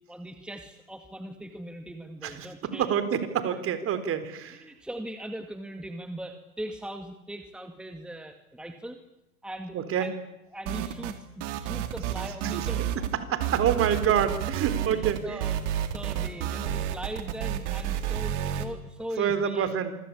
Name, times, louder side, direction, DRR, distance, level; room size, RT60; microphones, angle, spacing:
voice 1, 0.1-2.9 3.5-3.6 4.6-9.0 9.4-10.1 10.5-12.9 14.8-15.6 15.9-19.7, right 1 dB, ahead, 7 dB, 2.2 m, -40 dB
voice 2, 2.2-4.6 9.7-10.1 12.5-15.5 19.2-20.0, right 8 dB, 30° right, 11 dB, 4.1 m, -27 dB
sound 1, 10.7-11.2 11.4-13.1 13.4-18.7, right 10 dB, 50° right, 3.5 m, -30 dB
27.5 x 24.0 x 8.7 m, 0.91 s
hypercardioid pair, 105°, 44 cm